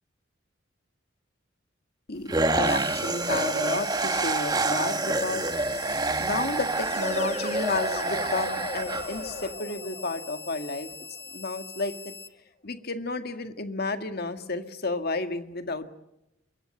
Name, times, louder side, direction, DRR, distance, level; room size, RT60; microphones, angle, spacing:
voice 1, 2.1-5.5 6.2-10.9 11.3-12.1 12.6-15.9, left 3 dB, 55° left, 8 dB, 1.9 m, -32 dB
sound 1, 2.3-9.5, right 3 dB, 20° right, 1.2 m, -27 dB
sound 2, 2.6-12.3, left 3 dB, 10° left, 1.2 m, -43 dB
sound 3, 6.8-11.7, left 3 dB, 40° left, 2.9 m, -39 dB
26.0 x 22.5 x 7.8 m, 0.90 s
head